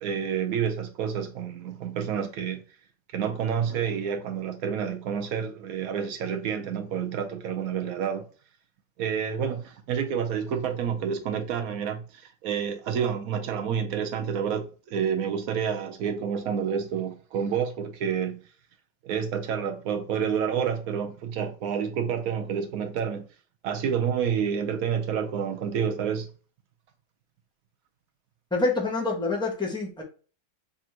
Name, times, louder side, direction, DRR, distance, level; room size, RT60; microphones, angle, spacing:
voice 1, 0.0-2.6 3.1-8.3 9.0-18.4 19.0-23.2 23.6-26.3, right 7 dB, 70° right, 0.8 m, -29 dB
voice 2, 28.5-30.0, left 3 dB, 5° left, 0.4 m, -26 dB
3.4 x 2.5 x 4.3 m
omnidirectional pair, 2.0 m